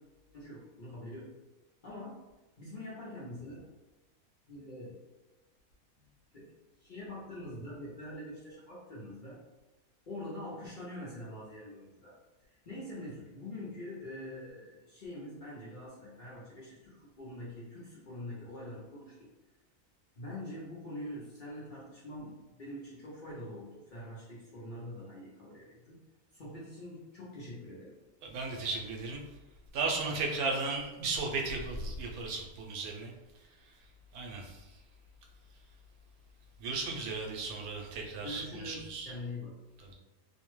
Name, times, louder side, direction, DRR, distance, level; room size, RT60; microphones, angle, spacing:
voice 1, 0.3-1.3 1.8-2.3 2.6-3.7 4.5-5.0 6.0-6.5 6.8-9.4 10.1-12.2 12.5-19.3 20.2-26.0 26.3-28.0 38.2-39.6, left 1 dB, 50° left, -8 dB, 0.6 m, -44 dB
voice 2, 28.2-29.2 29.7-33.1 34.1-34.6 36.6-39.1 39.8-39.9, right 3 dB, 90° right, 0 dB, 1.1 m, -35 dB
2.6 x 2.1 x 3.0 m, 1.1 s
omnidirectional pair, 1.5 m